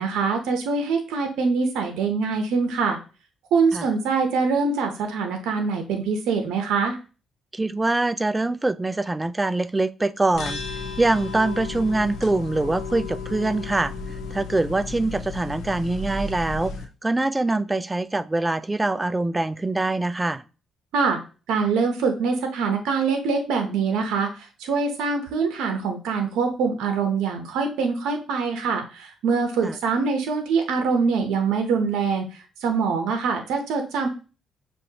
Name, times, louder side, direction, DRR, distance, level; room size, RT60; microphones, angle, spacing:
voice 1, 0.0-3.0 3.5-7.0 20.9-21.2 21.5-34.1, right 5 dB, 90° right, 0.8 m, -24 dB
voice 2, 7.5-16.7 17.0-20.4 29.6-29.8, right 2 dB, 15° right, 0.3 m, -24 dB
sound 1, 10.3-16.8, left 4 dB, 85° left, 0.9 m, -34 dB
6.2 x 2.6 x 2.8 m
cardioid pair, 90°, 0 cm